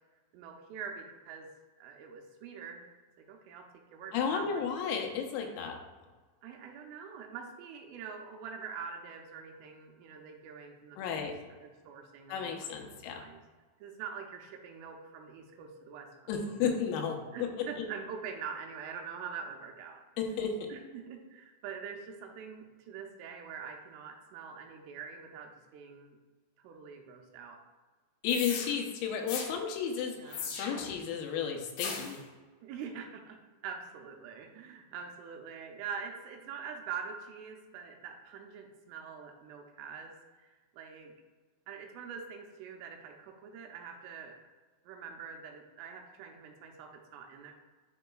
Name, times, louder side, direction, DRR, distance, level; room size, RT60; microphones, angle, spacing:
voice 1, 0.3-1.5 1.8-2.9 3.2-4.7 6.4-11.2 11.6-13.4 13.8-16.7 17.3-20.0 20.7-26.2 26.6-27.6 30.2-30.5 32.6-41.1 41.7-44.4 44.9-47.5, right 6 dB, 80° right, 3 dB, 3.1 m, -44 dB
voice 2, 4.1-5.8 11.0-11.3 12.3-13.2 16.3-17.5 17.8-17.9 20.2-20.5 28.2-32.2, left 7 dB, 90° left, 3 dB, 3.6 m, -33 dB
sound 1, 28.3-28.7 29.3-29.5 30.3-30.9 31.8-32.2, left 5 dB, 75° left, 2.5 m, -37 dB
10.5 x 5.3 x 2.3 m, 1.3 s
omnidirectional pair, 5.9 m